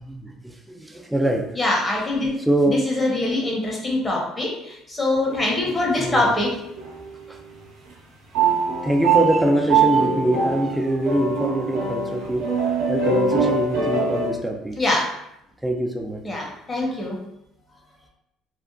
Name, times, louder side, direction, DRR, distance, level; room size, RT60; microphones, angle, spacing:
voice 1, 0.0-1.6 2.4-2.8 5.6-6.3 7.3-7.4 8.8-12.5 12.9-14.8 15.6-16.2, right 1 dB, 5° right, 1 dB, 0.5 m, -24 dB
voice 2, 1.6-2.3 2.7-6.5 14.8-15.1 16.2-17.2, left 2 dB, 25° left, -2 dB, 1.1 m, -23 dB
sound 1, 5.3-6.0 6.8-7.4 8.3-14.3, right 5 dB, 85° right, 0.9 m, -23 dB
3.5 x 2.1 x 2.5 m, 0.82 s
hypercardioid pair, 70°, 0 cm